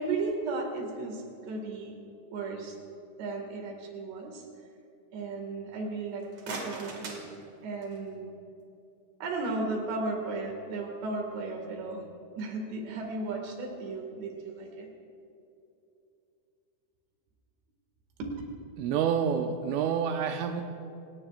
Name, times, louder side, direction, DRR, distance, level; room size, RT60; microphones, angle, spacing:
voice 1, 0.0-1.9 2.3-2.8 3.2-4.5 5.1-7.2 7.6-8.3 9.2-12.1 12.4-14.9 18.2-18.3, right 3 dB, 65° right, 2 dB, 4.0 m, -35 dB
sound 1, 6.1-8.1, right 2 dB, 45° right, 2.4 m, -41 dB
voice 2, 18.8-20.6, right 7 dB, 80° right, 5 dB, 3.1 m, -28 dB
28.0 x 18.0 x 2.5 m, 2.7 s
omnidirectional pair, 5.8 m